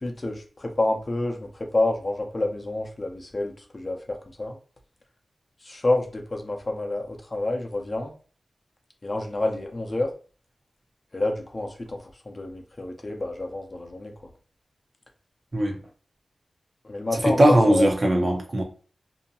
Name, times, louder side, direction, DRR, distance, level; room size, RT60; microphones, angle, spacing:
voice 1, 0.0-4.6 5.6-8.1 9.0-10.1 11.1-12.0 12.3-14.1 16.9-17.4 17.7-17.9, left 2 dB, 35° left, 0.6 m, -28 dB
voice 2, 17.2-18.6, right 1 dB, 40° right, 0.6 m, -19 dB
2.7 x 2.1 x 2.7 m
cardioid pair, 60°, 0 cm